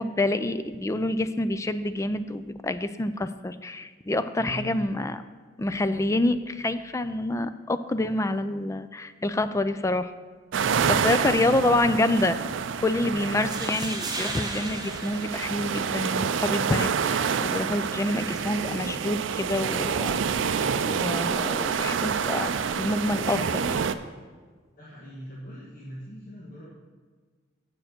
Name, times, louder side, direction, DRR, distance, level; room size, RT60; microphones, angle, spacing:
voice 1, 0.0-5.2 5.6-10.1 10.9-12.4 12.8-20.2 20.9-22.5 22.8-23.9, left 2 dB, 15° left, 11 dB, 0.3 m, -27 dB
voice 2, 4.4-4.9 10.8-11.9 13.0-13.6 24.8-26.7, equal, 50° left, -6 dB, 1.5 m, -41 dB
sound 1, 10.5-24.0, right 6 dB, 70° right, 0.4 m, -28 dB
sound 2, 13.2-16.2, right 3 dB, 20° right, 1.0 m, -36 dB
7.6 x 6.7 x 5.9 m, 1.5 s
head